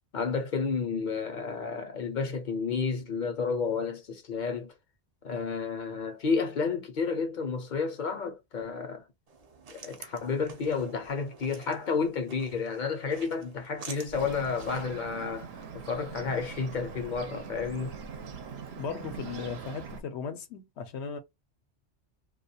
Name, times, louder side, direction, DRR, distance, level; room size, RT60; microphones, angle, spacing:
voice 1, 0.1-4.7 5.2-9.0 9.7-15.5 15.7-18.0, left 5 dB, 50° left, 0.7 m, -31 dB
sound 1, 9.3-15.0, right 4 dB, 50° right, 0.5 m, -49 dB
Bird, 14.1-20.0, right 6 dB, 70° right, 0.8 m, -42 dB
voice 2, 18.8-21.2, left 6 dB, 80° left, 0.9 m, -37 dB
2.3 x 2.3 x 2.6 m
omnidirectional pair, 1.1 m